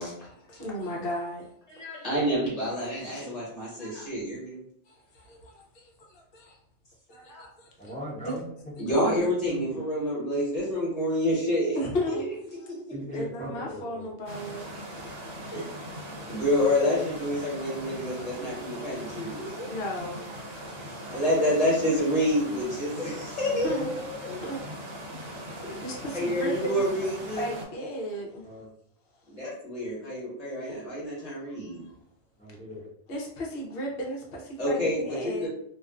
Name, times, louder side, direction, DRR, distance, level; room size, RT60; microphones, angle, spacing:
voice 1, 0.2-1.5 4.9-6.6 7.4-7.9 8.2-8.3 8.9-9.0 11.7-12.3 13.1-14.7 19.6-20.2 23.5-23.9 24.3-24.6 25.1-26.8 27.4-28.5 31.5-31.9 33.1-35.5, equal, 60° left, -1 dB, 0.8 m, -35 dB
voice 2, 1.7-4.6 7.1-7.5 8.8-11.8 12.1-12.2 15.5-15.7 16.3-19.7 21.1-24.4 25.6-25.7 26.1-27.5 29.3-31.8 34.6-35.5, equal, 30° left, -6 dB, 1.2 m, -28 dB
voice 3, 7.8-9.6 12.9-14.1 28.4-28.7 32.4-32.9, equal, 10° left, -7 dB, 0.6 m, -39 dB
sound 1, 14.3-27.7, equal, 60° right, 0.8 m, -40 dB
2.4 x 2.4 x 2.3 m, 0.67 s
omnidirectional pair, 1.3 m